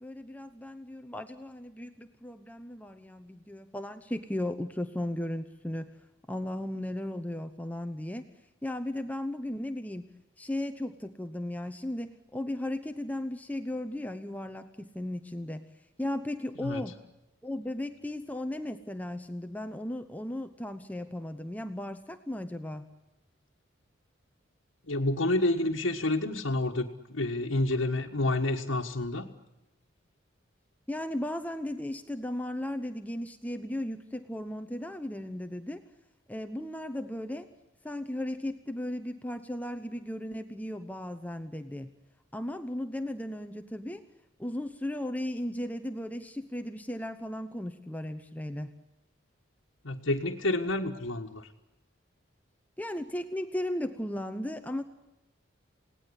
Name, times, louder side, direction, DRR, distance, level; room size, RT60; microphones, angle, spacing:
voice 1, 0.0-5.9 6.3-8.2 8.6-10.0 10.4-15.6 16.0-17.0 17.4-22.9 30.9-35.8 36.3-37.5 37.8-41.9 42.3-44.0 44.4-48.7 52.8-54.8, left 1 dB, 10° left, 9 dB, 0.9 m, -36 dB
voice 2, 24.9-29.3 49.8-51.5, left 2 dB, 85° left, -2 dB, 1.6 m, -29 dB
28.0 x 18.5 x 9.9 m, 0.96 s
head